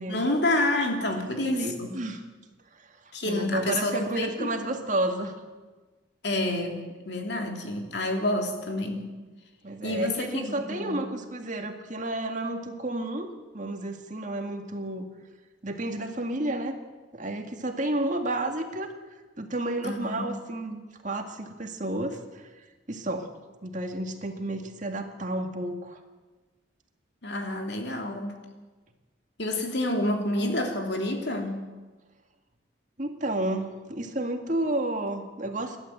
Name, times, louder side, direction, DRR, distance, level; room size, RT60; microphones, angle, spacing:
voice 1, 0.1-2.0 3.1-4.7 6.2-9.1 9.8-11.0 19.8-20.3 27.2-28.3 29.4-31.6, left 1 dB, 60° left, 3 dB, 3.1 m, -28 dB
voice 2, 1.2-2.2 2.7-2.9 3.2-5.4 9.6-13.3 13.5-15.1 15.6-16.8 17.1-18.9 19.4-22.5 22.9-23.3 23.6-26.0 33.0-35.8, right 1 dB, 40° right, 4 dB, 2.0 m, -31 dB
28.5 x 12.0 x 8.1 m, 1.3 s
head